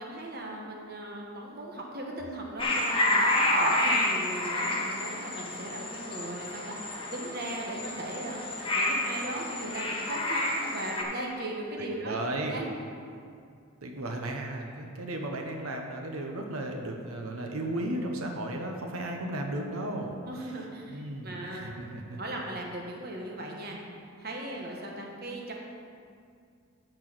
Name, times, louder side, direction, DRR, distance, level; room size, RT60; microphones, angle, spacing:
voice 1, 0.0-12.8 14.7-14.8 20.2-21.8 22.2-23.8 24.2-25.5, right 1 dB, 45° right, -1 dB, 1.3 m, -38 dB
sound 1, 2.6-11.0, left 1 dB, 25° left, 1.3 m, -29 dB
voice 2, 11.7-12.6 13.8-20.5 20.9-22.2, right 1 dB, 85° right, 2 dB, 1.1 m, -35 dB
14.0 x 4.7 x 6.1 m, 2.3 s
head